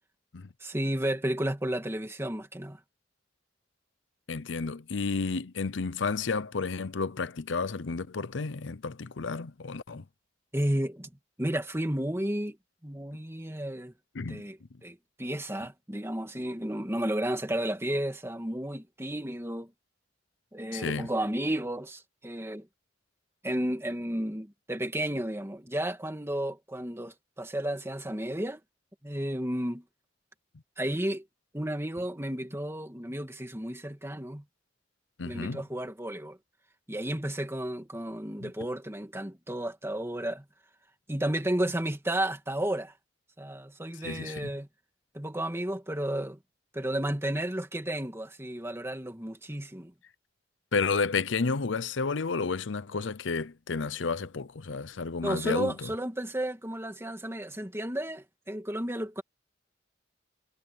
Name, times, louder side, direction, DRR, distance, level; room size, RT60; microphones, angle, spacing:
voice 1, 0.6-2.8 10.5-11.1 11.4-12.6 12.8-13.9 14.2-19.7 20.5-22.7 23.4-28.6 29.0-29.8 30.8-31.2 31.5-34.4 35.2-36.4 36.9-40.4 41.1-42.9 43.4-44.7 45.1-46.4 46.7-49.9 55.2-59.2, right 1 dB, 15° right, 2.4 m, -32 dB
voice 2, 4.3-10.0 14.1-14.4 20.7-21.1 35.2-35.6 38.4-38.5 44.0-44.5 50.7-55.9, left 4 dB, 85° left, 0.7 m, -31 dB
head